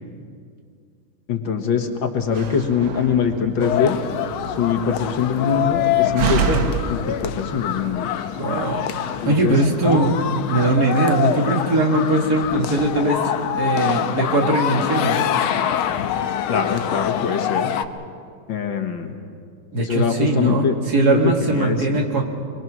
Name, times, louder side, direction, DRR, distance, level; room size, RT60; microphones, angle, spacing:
voice 1, 1.3-4.0 4.5-6.6 6.9-8.1 9.2-9.6 9.8-9.9 16.5-17.7 18.5-19.1 19.8-20.8 21.0-22.0, left 6 dB, 65° left, 5 dB, 2.1 m, -23 dB
Slam, 2.2-7.8, right 6 dB, 70° right, 2.0 m, -28 dB
sound 1, 3.6-17.8, left 10 dB, 90° left, 1.6 m, -25 dB
voice 2, 8.4-8.9 9.2-10.2 10.5-13.2 13.5-15.2 19.7-22.2, right 2 dB, 50° right, 1 dB, 2.5 m, -20 dB
24.5 x 23.0 x 6.2 m, 2.2 s
omnidirectional pair, 2.3 m